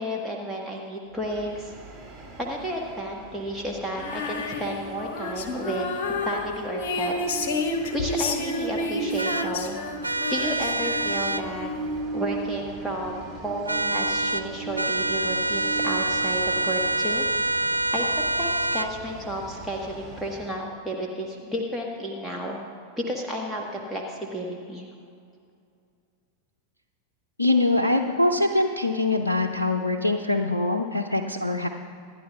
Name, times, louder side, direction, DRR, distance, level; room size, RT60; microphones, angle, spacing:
voice 1, 0.0-1.7 2.4-7.4 7.9-9.8 10.3-11.7 12.1-17.3 17.9-22.6 23.1-24.9, equal, ahead, -2 dB, 1.2 m, -32 dB
Train, 1.1-20.6, right 3 dB, 20° right, 2.3 m, -38 dB
Female singing, 3.9-11.4, left 3 dB, 50° left, 1.2 m, -30 dB
sound 1, 9.2-9.5 10.0-11.4 13.7-14.5 14.8-18.9, right 2 dB, 80° right, 0.3 m, -26 dB
voice 2, 27.4-31.7, left 2 dB, 85° left, 3 dB, 0.5 m, -23 dB
25.5 x 11.0 x 2.3 m, 2.4 s
figure-of-eight pair, 90°, 0 cm